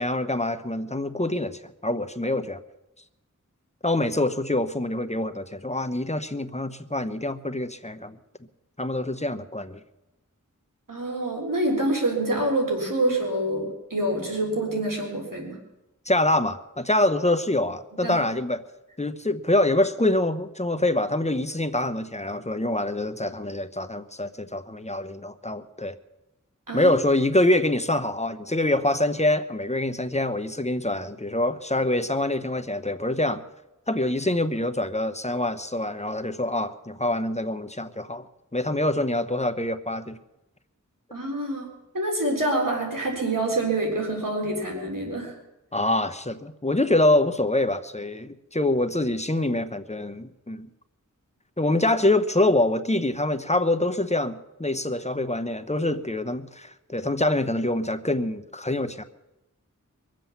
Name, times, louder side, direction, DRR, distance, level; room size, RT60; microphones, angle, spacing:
voice 1, 0.0-2.6 3.8-8.2 8.8-9.8 16.1-18.6 19.0-25.9 26.7-33.4 33.9-38.2 38.5-40.2 45.7-50.7 51.6-59.0, left 1 dB, 20° left, 11 dB, 0.9 m, -25 dB
voice 2, 10.9-15.6 18.0-18.2 26.7-26.9 41.1-41.7 41.9-45.3, right 1 dB, 80° right, 0 dB, 3.8 m, -26 dB
23.0 x 7.7 x 7.2 m, 0.95 s
wide cardioid pair, 45°, 32 cm